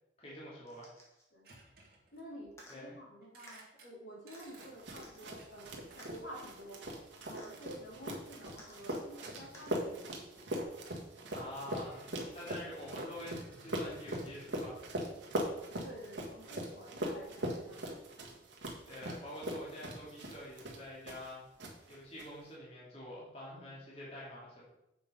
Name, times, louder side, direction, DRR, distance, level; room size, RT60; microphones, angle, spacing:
voice 1, 0.2-0.9 2.7-3.0 11.3-14.8 18.8-21.4 21.9-24.7, left 1 dB, 35° left, -6 dB, 2.5 m, -47 dB
sound 1, 0.7-1.3 2.5-2.8 3.5-3.6 4.3-4.5 5.0-5.2 6.0-6.1 7.4-7.5 8.5-9.1 9.5-9.7 10.6-10.7, left 1 dB, 15° left, 1.7 m, -56 dB
sound 2, 1.4-2.6 3.2-3.9 4.3-4.7 5.3-7.0 7.7-8.0 8.3-8.8 9.4-9.7 10.7-10.8 11.3-12.1 12.7-15.4, right 2 dB, 55° right, 1.9 m, -58 dB
voice 2, 2.1-6.8 7.2-10.3 15.8-17.9, equal, 80° left, -4 dB, 3.4 m, -50 dB
sound 3, 4.6-21.3 21.6-22.3, right 1 dB, 80° right, 1.7 m, -41 dB
7.8 x 5.9 x 5.4 m, 0.89 s
head